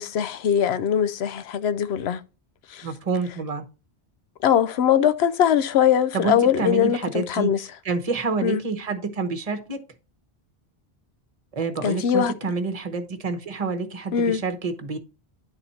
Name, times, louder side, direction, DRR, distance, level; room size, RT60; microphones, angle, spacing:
voice 1, 0.0-2.2 2.7-2.9 4.4-7.6 8.4-8.6 11.8-12.3 14.1-14.4, left 9 dB, 80° left, 0.9 m, -21 dB
voice 2, 2.8-3.6 6.1-7.5 7.8-9.8 11.5-15.0, right 4 dB, 35° right, 1.0 m, -28 dB
9.9 x 4.2 x 4.2 m
omnidirectional pair, 1.1 m